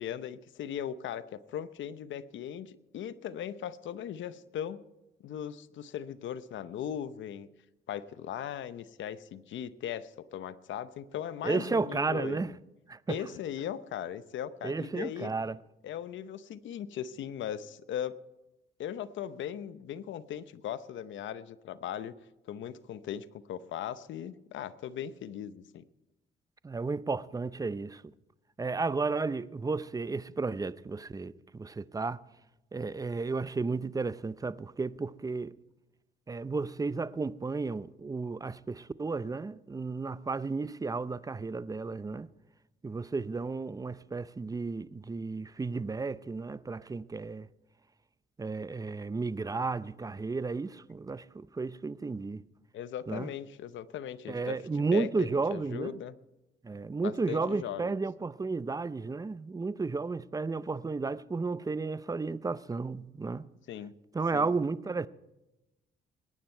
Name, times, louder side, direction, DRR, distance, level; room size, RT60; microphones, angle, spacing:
voice 1, 0.0-4.8 5.2-7.5 7.9-12.5 13.1-15.3 15.8-18.1 18.8-22.1 22.5-25.8 52.7-54.6 54.9-56.1 57.0-57.9 63.7-63.9 64.3-64.5, left 9 dB, 70° left, 0.8 m, -38 dB
voice 2, 11.4-12.5 12.9-13.2 14.6-15.6 26.6-28.1 28.6-32.2 32.7-35.5 36.3-42.3 42.8-47.5 48.4-52.4 53.1-53.3 54.3-55.9 56.6-63.4 64.1-65.1, right 4 dB, 20° right, 0.6 m, -33 dB
21.5 x 9.6 x 4.5 m
cardioid pair, 90°, 20 cm